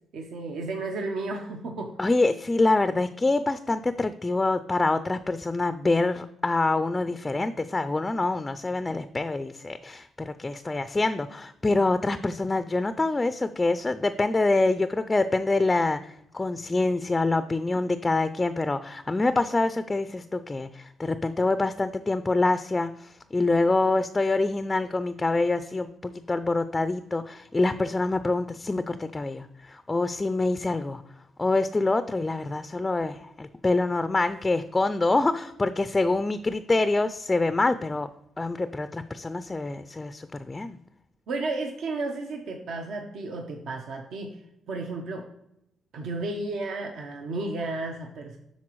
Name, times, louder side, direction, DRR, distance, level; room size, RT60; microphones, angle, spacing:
voice 1, 0.1-1.9 41.3-44.4 44.7-45.3 45.9-48.4, right 2 dB, 70° right, 3 dB, 0.8 m, -33 dB
voice 2, 2.0-31.0 31.4-38.1 38.4-40.8, left 2 dB, 20° left, 11 dB, 0.3 m, -26 dB
12.0 x 4.1 x 3.1 m, 0.82 s
cardioid pair, 90°, 0 cm